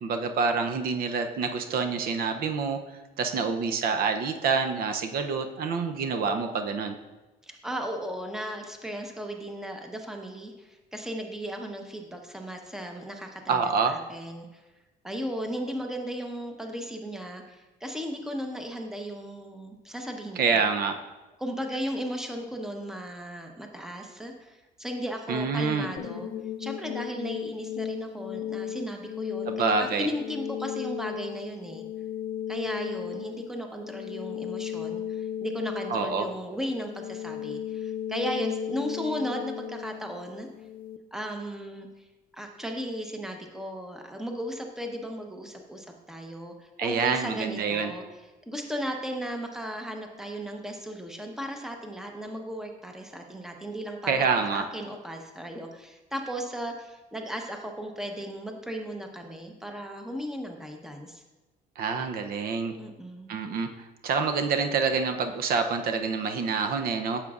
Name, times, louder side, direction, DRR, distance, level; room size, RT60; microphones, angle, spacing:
voice 1, 0.0-2.8 3.2-6.9 13.5-13.9 20.4-21.0 25.3-25.9 29.4-30.1 35.9-36.3 46.8-47.9 54.1-54.6 61.8-62.7 63.3-63.7 64.0-67.2, right 5 dB, 65° right, 7 dB, 0.6 m, -27 dB
voice 2, 7.4-14.6 15.0-20.7 21.4-26.3 26.6-29.5 29.8-31.8 32.5-40.5 41.1-42.0 42.3-48.0 48.5-61.2 62.8-63.3, equal, 5° right, 3 dB, 0.9 m, -36 dB
sound 1, 26.0-41.0, left 9 dB, 60° left, 0.4 m, -35 dB
9.1 x 7.2 x 2.4 m, 1.1 s
cardioid pair, 110°, 17 cm